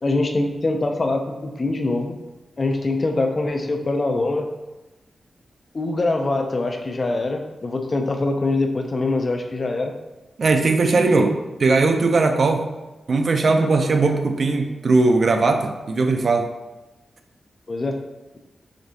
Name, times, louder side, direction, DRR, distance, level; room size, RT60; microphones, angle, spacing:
voice 1, 0.0-2.1 2.6-4.5 5.7-10.0 11.1-11.3 17.7-18.0, left 2 dB, 35° left, 4 dB, 0.4 m, -23 dB
voice 2, 10.4-11.3 11.6-12.7 13.1-16.5, right 3 dB, 50° right, 5 dB, 0.4 m, -19 dB
5.0 x 3.5 x 2.7 m, 1.1 s
wide cardioid pair, 160°, 0 cm